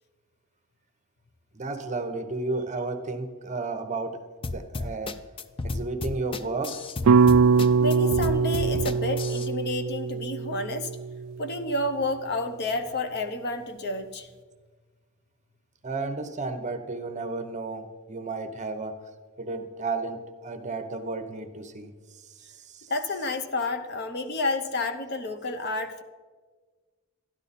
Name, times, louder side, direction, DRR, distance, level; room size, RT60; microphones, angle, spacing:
voice 1, 1.5-4.2 4.5-5.2 5.6-6.8 15.8-19.0 19.4-21.9 22.2-22.9, right 3 dB, 35° right, 8 dB, 0.8 m, -33 dB
sound 1, 4.4-9.5, left 2 dB, 25° left, 0.4 m, -32 dB
sound 2, 7.1-11.3, right 5 dB, 75° right, 0.3 m, -22 dB
voice 2, 7.8-10.9 11.4-14.3 22.9-26.0, left 2 dB, 50° left, 8 dB, 0.8 m, -30 dB
12.5 x 11.0 x 4.1 m, 1.4 s
head